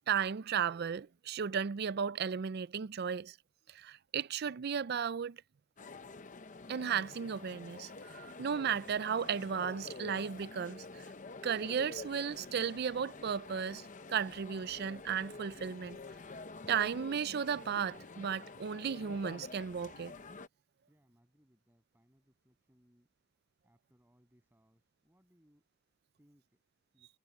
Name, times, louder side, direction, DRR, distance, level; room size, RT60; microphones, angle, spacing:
voice 1, 0.1-3.4 3.7-5.4 6.7-11.1 11.4-16.0 16.7-20.1, right 7 dB, 50° right, 0.4 m, -35 dB
sound 1, 5.8-20.5, left 3 dB, 35° left, 0.8 m, -48 dB
voice 2, 20.9-23.1 23.6-25.7 26.2-26.6 26.9-27.1, equal, 10° right, 7.2 m, -70 dB
head